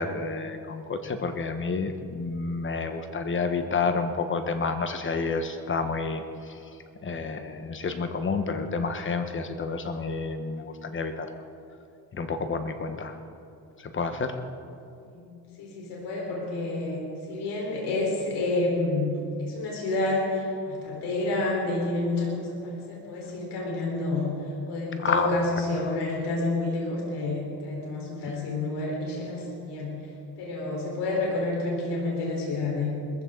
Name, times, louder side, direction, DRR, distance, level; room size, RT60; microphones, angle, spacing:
voice 1, 0.0-6.6 7.0-11.3 12.1-13.2 13.8-14.4 25.0-25.3, left 4 dB, 30° left, 7 dB, 1.3 m, -29 dB
voice 2, 15.6-19.1 19.4-24.3 24.7-29.9 30.4-32.9, left 2 dB, 70° left, -2 dB, 4.4 m, -29 dB
20.5 x 15.0 x 3.9 m, 2.5 s
cardioid pair, 110°, 41 cm